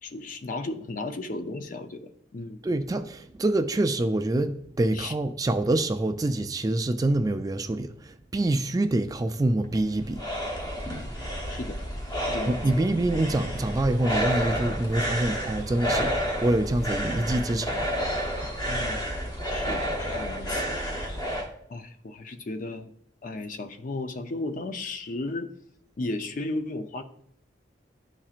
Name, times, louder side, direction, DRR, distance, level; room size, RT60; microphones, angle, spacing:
voice 1, 0.0-2.6 4.9-5.1 11.5-11.8 12.2-12.8 18.7-19.0 19.5-20.6 21.7-22.9 23.2-25.5 26.0-27.0, left 2 dB, 45° left, 0.5 m, -34 dB
voice 2, 2.6-10.2 12.5-17.9, right 2 dB, 20° right, 0.3 m, -26 dB
sound 1, 9.6-21.5, equal, 25° left, 0.9 m, -30 dB
12.0 x 4.3 x 2.4 m
head